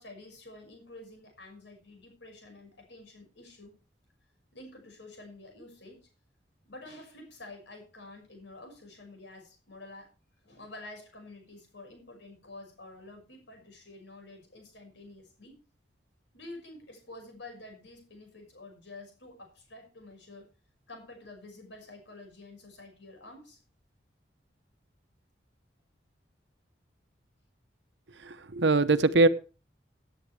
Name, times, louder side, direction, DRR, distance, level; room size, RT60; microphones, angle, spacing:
voice 1, 0.0-3.8 4.5-6.1 6.6-10.1 10.4-15.6 16.3-20.5 20.9-23.6, left 2 dB, 75° left, 4 dB, 5.8 m, -49 dB
voice 2, 28.2-29.3, right 3 dB, 75° right, 12 dB, 0.9 m, -22 dB
18.0 x 9.3 x 3.4 m, 0.34 s
head